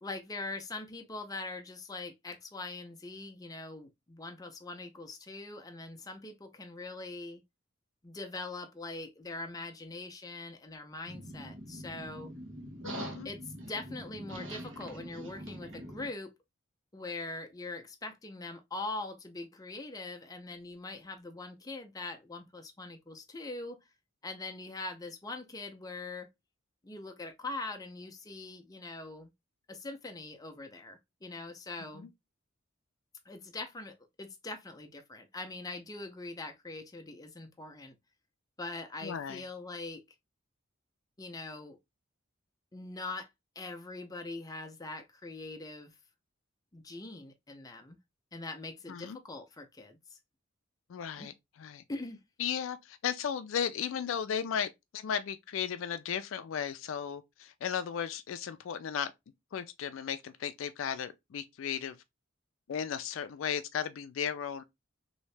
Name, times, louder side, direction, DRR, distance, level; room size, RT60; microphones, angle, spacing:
voice 1, 0.0-7.4 8.0-12.3 13.2-16.3 16.9-23.8 24.2-26.3 26.8-29.3 29.7-32.1 33.3-37.9 38.6-40.0 41.2-41.8 42.7-43.3 43.6-45.9 46.7-48.0 48.3-50.2 51.2-51.3 51.9-52.2, left 2 dB, 20° left, 0.6 m, -42 dB
sound 1, 11.1-16.1, equal, 70° right, 1.1 m, -44 dB
voice 2, 12.8-13.3 31.9-32.1 39.0-39.4 48.9-49.2 50.9-51.8 52.4-59.1 59.5-62.0 62.7-64.6, left 8 dB, 75° left, 0.4 m, -35 dB
3.1 x 2.7 x 3.2 m
head